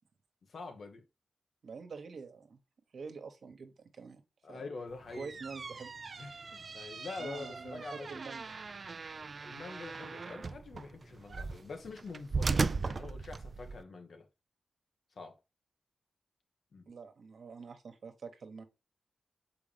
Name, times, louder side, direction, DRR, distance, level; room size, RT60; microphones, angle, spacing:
voice 1, 0.5-1.0 4.4-5.3 6.2-8.2 9.2-14.3 15.2-15.3 16.7-16.8, left 3 dB, 75° left, 1.4 m, -45 dB
voice 2, 1.6-2.6 2.9-4.2 4.5-4.6 5.2-5.9 7.2-8.5 16.9-18.6, right 5 dB, 75° right, 1.3 m, -46 dB
sound 1, 5.0-13.8, right 4 dB, 55° right, 0.4 m, -38 dB
7.1 x 4.8 x 3.4 m
cardioid pair, 65°, 0 cm